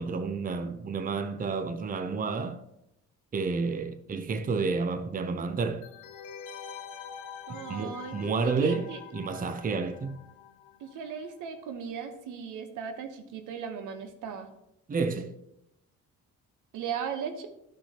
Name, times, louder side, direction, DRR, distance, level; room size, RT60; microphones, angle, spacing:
voice 1, 0.0-2.6 3.3-5.8 7.7-10.2 14.9-15.3, right 4 dB, 30° right, 0.6 m, -30 dB
sound 1, 5.8-11.3 11.5-11.6, left 8 dB, 90° left, 0.8 m, -45 dB
voice 2, 7.5-8.2 8.4-9.0 10.8-14.5 16.7-17.5, right 7 dB, 85° right, 1.0 m, -37 dB
12.0 x 5.9 x 2.9 m
cardioid pair, 90°, 30 cm